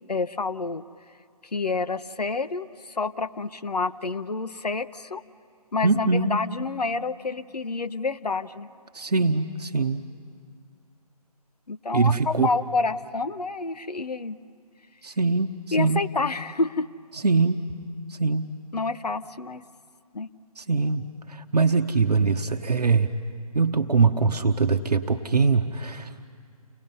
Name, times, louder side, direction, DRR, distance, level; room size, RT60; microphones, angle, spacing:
voice 1, 0.1-0.8 1.5-5.2 5.7-8.7 11.7-14.4 15.7-16.9 18.7-19.6 20.1-20.3, left 3 dB, 85° left, 12 dB, 0.8 m, -28 dB
voice 2, 5.8-6.4 8.9-10.1 11.9-12.5 15.0-15.5 15.8-16.0 17.1-17.6 18.1-18.5 20.6-23.1 23.5-26.1, right 4 dB, 85° right, 5 dB, 1.0 m, -22 dB
29.5 x 19.5 x 5.5 m, 2.3 s
figure-of-eight pair, 150°, 20 cm